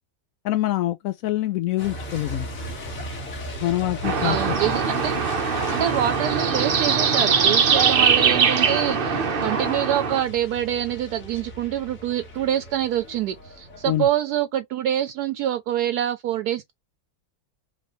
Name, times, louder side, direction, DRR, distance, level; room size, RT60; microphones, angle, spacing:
voice 1, 0.4-2.5 3.6-4.5 13.9-14.1, left 14 dB, 70° left, 0.8 m, -25 dB
Truck, 1.8-14.1, equal, 55° left, 2.0 m, -37 dB
sound 1, 4.0-10.2, right 6 dB, 45° right, 0.8 m, -21 dB
voice 2, 4.2-5.2 5.7-16.7, right 11 dB, 75° right, 1.1 m, -26 dB
5.0 x 3.3 x 3.0 m
omnidirectional pair, 1.8 m